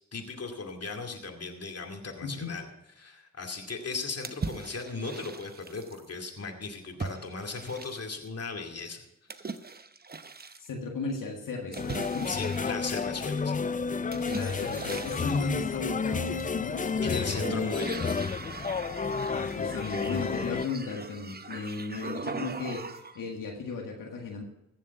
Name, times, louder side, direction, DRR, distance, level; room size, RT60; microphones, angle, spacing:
voice 1, 0.1-2.7 3.0-9.0 9.4-9.6 12.3-13.6 17.0-18.1, left 3 dB, 50° left, 4 dB, 2.4 m, -37 dB
sound 1, 4.2-6.1 7.0-8.3 9.3-10.7 11.7-13.4 14.1-15.6 16.3-16.9 17.2-23.2, right 4 dB, 30° right, 0.9 m, -40 dB
voice 2, 10.6-12.3 14.3-17.8 19.3-24.4, left 4 dB, 90° left, 0 dB, 1.8 m, -35 dB
sound 2, 11.8-20.7, left 5 dB, 25° left, 0.4 m, -31 dB
15.5 x 7.3 x 5.7 m, 0.89 s
cardioid pair, 45°, 32 cm